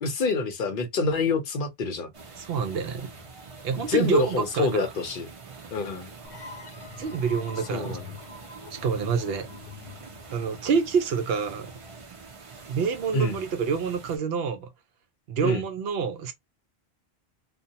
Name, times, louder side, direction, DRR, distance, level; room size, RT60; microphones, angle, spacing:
voice 1, 0.0-2.1 3.7-5.3 5.7-6.1 7.7-8.0 13.1-13.4 15.4-15.6, left 3 dB, 60° left, 0.7 m, -27 dB
sound 1, 2.1-14.2, right 4 dB, 40° right, 0.5 m, -45 dB
voice 2, 2.4-3.1 3.6-4.9 7.0-7.9 8.7-9.5 10.3-11.7 12.7-14.7 15.3-16.3, right 6 dB, 70° right, 0.8 m, -27 dB
sound 2, 6.2-11.7, left 5 dB, 85° left, 0.9 m, -45 dB
2.7 x 2.2 x 2.6 m
omnidirectional pair, 1.1 m